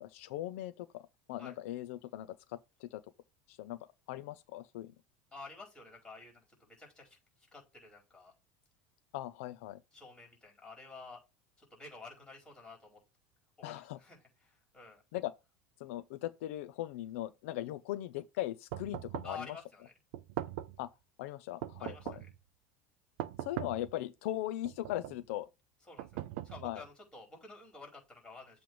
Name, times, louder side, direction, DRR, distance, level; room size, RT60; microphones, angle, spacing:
voice 1, 0.0-3.0 3.5-3.8 4.1-4.9 9.1-9.8 13.6-14.0 15.1-15.3 15.8-19.6 20.8-20.9 21.2-22.2 23.4-25.5 26.6-26.8, left 14 dB, 80° left, 0.6 m, -39 dB
voice 2, 5.3-7.2 7.5-8.3 9.9-11.2 11.6-13.0 13.6-14.2 14.4-15.0 19.2-19.9 21.8-22.3 25.9-26.1 26.4-28.6, left 3 dB, 10° left, 4.9 m, -50 dB
sound 1, 18.7-19.4 20.1-20.9 21.6-22.4 23.2-23.9 24.6-25.2 26.0-26.9, right 14 dB, 70° right, 0.7 m, -41 dB
7.7 x 3.4 x 5.2 m
cardioid pair, 165°, 7 cm